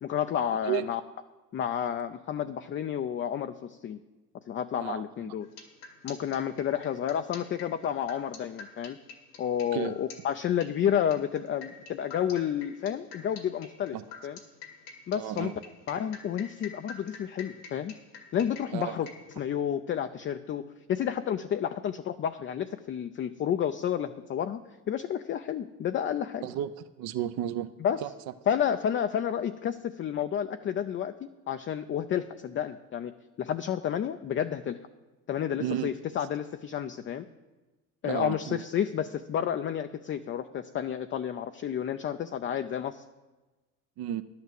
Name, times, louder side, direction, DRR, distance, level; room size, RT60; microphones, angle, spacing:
voice 1, 0.0-1.0 1.5-4.0 4.5-5.5 6.0-9.0 9.4-14.0 14.2-14.4 15.1-15.5 15.9-17.9 18.3-19.1 19.4-24.6 24.9-26.5 27.8-28.0 28.5-31.1 31.5-33.1 33.4-34.8 35.3-37.3 38.0-43.0, left 9 dB, 30° left, 8 dB, 0.4 m, -30 dB
voice 2, 4.8-5.3 9.7-9.9 13.9-14.0 15.1-15.6 18.7-19.0 26.4-26.7 27.0-27.7 28.0-28.1 35.6-35.9 38.0-38.6 44.0-44.2, right 11 dB, 55° right, 11 dB, 0.7 m, -32 dB
sound 1, 5.4-19.3, left 6 dB, 85° left, 2.0 m, -46 dB
11.0 x 5.8 x 7.6 m, 1.2 s
supercardioid pair, 90°, 46 cm